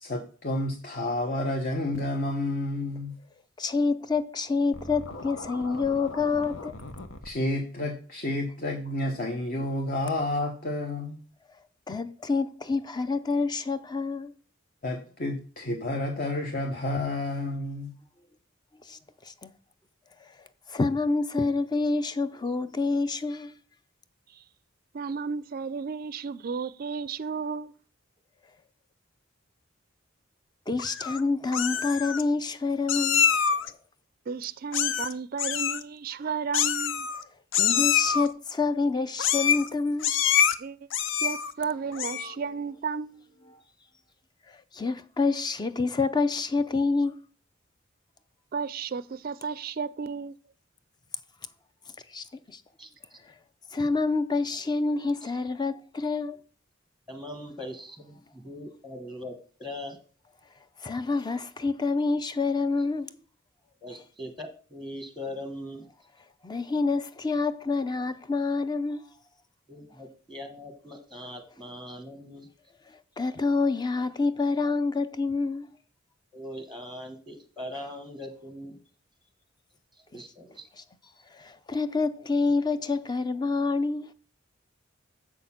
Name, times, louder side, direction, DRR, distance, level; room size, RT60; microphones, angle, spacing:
voice 1, 0.0-3.1 7.2-11.2 14.8-17.9, left 1 dB, 45° left, 1.1 m, -30 dB
voice 2, 3.6-6.7 11.9-14.3 18.9-19.5 20.7-23.6 30.7-33.3 33.6-33.7 37.5-40.1 44.5-47.2 52.1-52.6 53.3-53.4 53.7-56.4 60.8-63.1 66.4-69.0 73.2-75.7 80.8-80.9 81.3-84.1, left 3 dB, 20° left, 0.5 m, -27 dB
Scratching (performance technique), 4.7-7.3, left 2 dB, 90° left, 1.1 m, -40 dB
voice 3, 24.9-27.7 34.3-37.1 40.6-43.2 48.5-50.3, right 5 dB, 45° right, 0.4 m, -33 dB
Meow, 30.8-31.2 31.5-32.2 32.9-33.7 34.7-35.1 35.4-35.8 36.5-37.2 37.5-38.3 39.2-39.7 40.0-40.5 40.9-41.5 41.9-42.3, left 8 dB, 65° left, 0.6 m, -25 dB
voice 4, 52.8-53.2 55.2-55.3 57.1-60.0 63.7-65.9 69.7-72.5 76.3-78.8 80.1-80.7, left 1 dB, ahead, 1.0 m, -41 dB
7.4 x 6.5 x 5.8 m
head